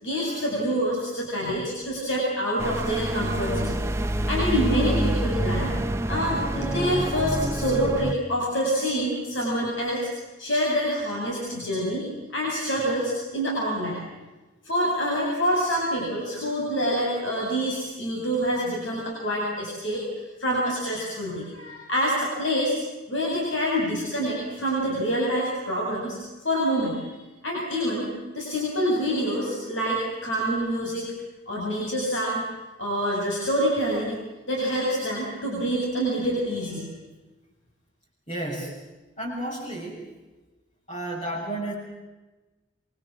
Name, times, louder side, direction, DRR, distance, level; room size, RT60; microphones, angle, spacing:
voice 1, 0.0-3.8 4.3-5.7 6.1-10.1 10.4-12.0 12.3-14.0 14.6-22.8 23.1-27.0 27.4-31.1 31.5-32.4 32.8-34.2 34.5-36.9, equal, 80° left, -3 dB, 7.7 m, -26 dB
sound 1, 2.6-8.1, right 1 dB, 15° right, 0.9 m, -27 dB
voice 2, 38.3-38.8 39.2-40.1 40.9-41.7, right 1 dB, 35° left, -7 dB, 7.6 m, -32 dB
27.0 x 25.5 x 7.5 m, 1.1 s
head